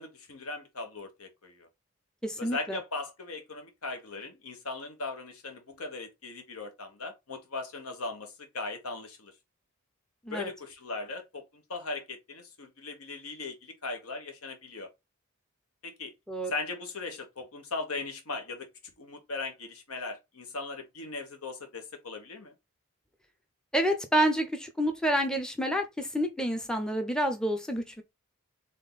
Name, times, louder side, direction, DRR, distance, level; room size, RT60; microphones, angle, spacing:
voice 1, 0.0-1.7 2.4-9.3 10.3-14.9 15.8-16.1 16.5-18.7 19.0-22.5, left 3 dB, 80° left, 1.3 m, -38 dB
voice 2, 2.2-2.8 10.2-10.5 16.3-16.5 23.7-28.0, right 1 dB, 5° left, 0.5 m, -28 dB
3.7 x 3.5 x 4.0 m
head